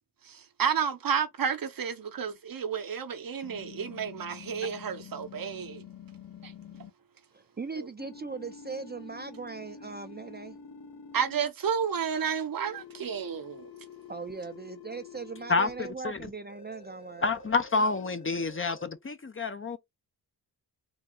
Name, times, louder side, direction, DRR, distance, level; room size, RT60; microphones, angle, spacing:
voice 1, 0.3-5.8 6.4-6.5 7.7-7.9 11.1-13.7, right 7 dB, 55° right, 0.8 m, -31 dB
sound 1, 3.4-6.9 8.0-11.5 12.6-15.8 16.5-18.9, left 6 dB, 60° left, 1.0 m, -48 dB
voice 2, 7.3-10.6 14.1-17.3, right 4 dB, 25° right, 0.5 m, -39 dB
voice 3, 15.5-16.3 17.2-19.8, left 3 dB, 30° left, 0.6 m, -28 dB
3.8 x 2.3 x 3.7 m
cardioid pair, 55°, 41 cm